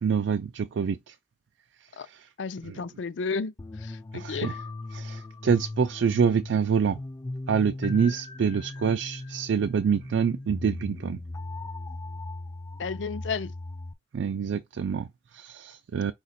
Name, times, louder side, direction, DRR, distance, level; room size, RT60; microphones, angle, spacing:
voice 1, 0.0-1.1 1.9-2.3 4.1-4.5 4.9-7.0 7.5-11.2 14.1-16.1, right 6 dB, 75° right, 0.4 m, -26 dB
voice 2, 2.4-4.6 12.8-13.5, left 4 dB, 85° left, 0.5 m, -33 dB
sound 1, 3.6-13.9, left 2 dB, 20° left, 0.4 m, -38 dB
5.0 x 2.4 x 4.1 m
head